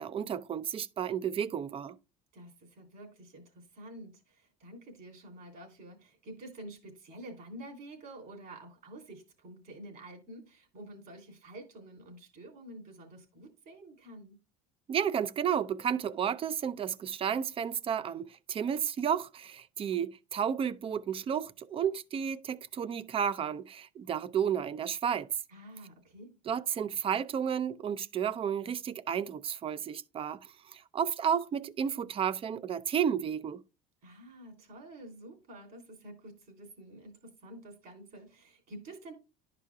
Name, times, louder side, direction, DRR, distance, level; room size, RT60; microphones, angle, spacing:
voice 1, 0.0-2.0 14.9-25.3 26.5-33.6, right 8 dB, 30° right, 0.5 m, -32 dB
voice 2, 2.3-14.4 25.5-26.3 34.0-39.1, right 1 dB, 50° right, 3.0 m, -49 dB
11.0 x 5.0 x 2.3 m
supercardioid pair, 115°, 18 cm